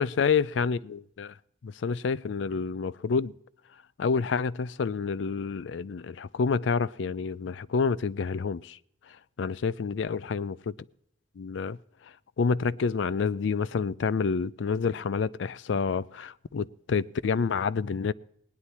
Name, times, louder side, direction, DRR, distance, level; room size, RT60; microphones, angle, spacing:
voice 1, 0.0-1.3 1.6-3.3 4.0-8.8 9.4-10.7 11.4-11.8 12.4-18.1, left 5 dB, 75° left, 0.4 m, -28 dB
18.5 x 9.7 x 4.2 m
head